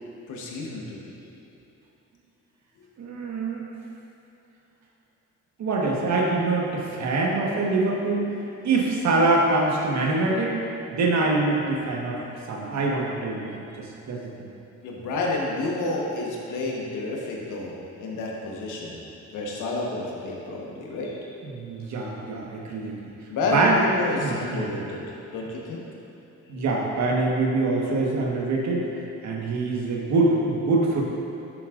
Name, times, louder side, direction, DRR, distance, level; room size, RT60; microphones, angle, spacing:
voice 1, 0.3-1.1 2.8-2.9 14.8-17.7 18.0-19.0 19.3-21.3 23.3-25.8, left 2 dB, 85° left, -2 dB, 1.4 m, -30 dB
voice 2, 3.0-3.6 5.6-8.3 8.6-10.6 10.9-12.2 12.5-14.3 21.4-23.0 23.5-23.8 24.2-24.7 26.5-28.9 29.2-31.0, right 3 dB, 65° right, -2 dB, 1.4 m, -24 dB
10.0 x 7.1 x 2.6 m, 2.9 s
cardioid pair, 90°, 30 cm